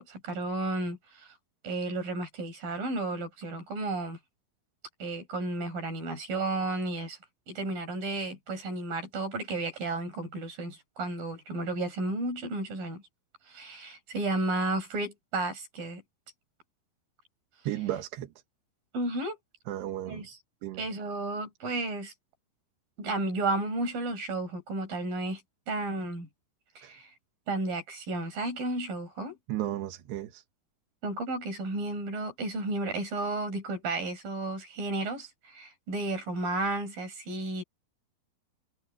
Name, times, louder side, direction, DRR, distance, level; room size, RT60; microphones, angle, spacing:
voice 1, 0.0-1.3 1.6-4.2 5.0-7.2 7.5-13.0 13.5-16.0 18.9-19.4 20.1-20.4 20.8-22.1 23.0-25.4 25.7-26.3 26.8-27.1 27.5-29.4 31.0-37.6, right 2 dB, 55° right, 8.4 m, -33 dB
voice 2, 17.7-18.3 19.7-20.3 20.6-20.8 26.8-27.0 29.5-30.4, right 13 dB, 85° right, 3.5 m, -34 dB
omnidirectional pair, 4.7 m